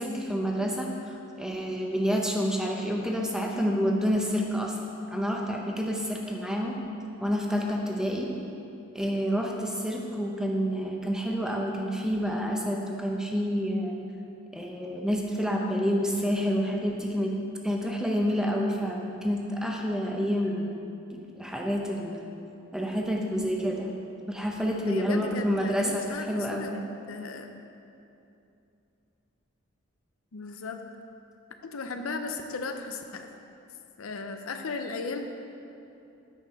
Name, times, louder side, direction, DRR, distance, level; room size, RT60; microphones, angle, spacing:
voice 1, 0.0-4.8 5.1-6.8 7.2-8.3 8.9-13.9 14.5-17.4 17.6-20.7 21.1-22.2 22.7-23.9 24.3-26.7, equal, 5° right, 0 dB, 0.6 m, -28 dB
voice 2, 24.9-27.5 30.3-30.9 31.6-33.3 34.0-35.3, left 3 dB, 85° left, 6 dB, 0.6 m, -36 dB
9.1 x 4.7 x 5.3 m, 2.7 s
head